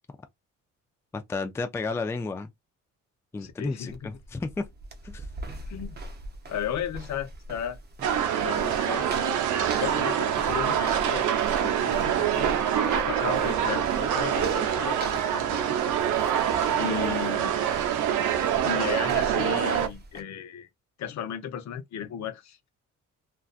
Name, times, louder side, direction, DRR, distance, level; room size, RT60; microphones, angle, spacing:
voice 1, 1.1-2.5 3.3-4.7 5.0-5.3, left 3 dB, 10° left, 0.3 m, -32 dB
voice 2, 3.4-4.1 5.5-6.0 6.5-7.8 8.4-9.4 9.8-11.3 11.6-15.7 16.8-17.7 18.6-20.7 21.0-22.6, left 9 dB, 65° left, 0.7 m, -35 dB
sound 1, 3.9-20.2, right 1 dB, 35° right, 0.7 m, -42 dB
sound 2, 8.0-19.9, right 9 dB, 80° right, 0.6 m, -25 dB
2.5 x 2.3 x 2.4 m
cardioid pair, 90°, 30 cm